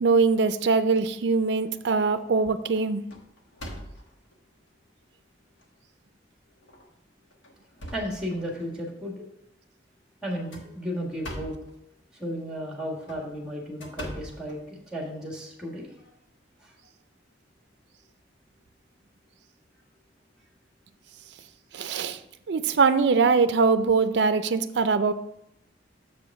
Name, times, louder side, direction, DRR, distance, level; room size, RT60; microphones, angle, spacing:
voice 1, 0.0-3.0 21.7-22.2 22.5-25.1, right 4 dB, 65° right, 11 dB, 0.4 m, -22 dB
sound 1, 1.1-1.7 2.2-2.4 2.8-4.3 5.0-5.1 5.6-5.7 6.6-6.8 7.3-8.8 10.3-11.7 12.9-15.1, equal, 80° left, 1.3 m, -42 dB
voice 2, 7.9-9.2 10.2-11.6 12.1-16.0 16.6-16.7, equal, 5° right, 0 dB, 1.5 m, -34 dB
6.8 x 5.1 x 4.7 m, 0.78 s
head